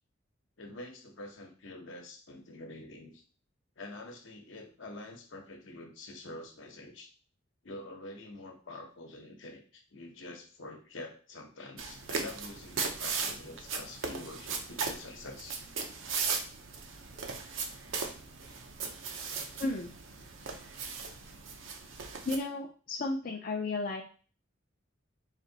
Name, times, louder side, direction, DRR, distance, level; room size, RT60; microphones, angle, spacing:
voice 1, 0.6-3.2 3.8-7.1 7.6-15.6 18.0-18.1, left 2 dB, 70° left, 3 dB, 0.9 m, -46 dB
sound 1, 11.8-22.4, right 5 dB, 75° right, 0.6 m, -37 dB
voice 2, 19.6-19.9 22.3-24.0, left 2 dB, 45° left, 0 dB, 0.5 m, -33 dB
4.2 x 2.6 x 3.9 m, 0.38 s
head